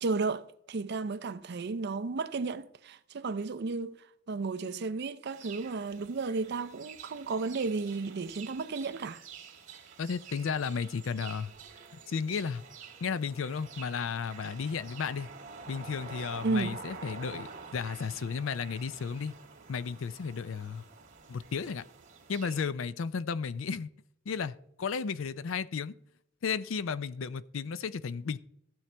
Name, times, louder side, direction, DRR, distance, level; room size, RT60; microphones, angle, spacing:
voice 1, 0.0-4.0 4.3-9.2 16.4-16.8, right 4 dB, 55° right, 0.5 m, -33 dB
sound 1, 5.3-22.7, right 5 dB, 40° right, 2.2 m, -48 dB
voice 2, 10.0-11.5 12.1-12.6 13.0-15.3 15.7-17.5 17.7-19.3 19.7-20.8 21.3-21.8 22.3-23.9 24.3-25.9 26.4-28.4, left 6 dB, 75° left, 0.5 m, -33 dB
15.0 x 7.2 x 3.3 m
head